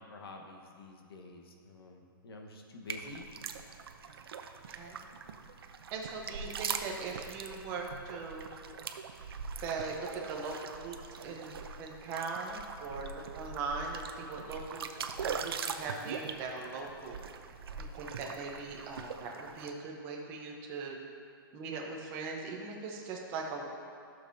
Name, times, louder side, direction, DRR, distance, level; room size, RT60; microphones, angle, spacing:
voice 1, 0.0-3.2, left 2 dB, 85° left, 2 dB, 1.2 m, -49 dB
sound 1, 2.9-19.7, right 6 dB, 85° right, 0.6 m, -42 dB
voice 2, 4.7-5.0 5.9-8.5 9.6-11.0 11.2-14.9 15.2-17.2 17.8-21.0 21.5-23.6, right 4 dB, 20° right, 0 dB, 0.8 m, -40 dB
14.0 x 6.3 x 2.7 m, 2.6 s
hypercardioid pair, 175°, 12 cm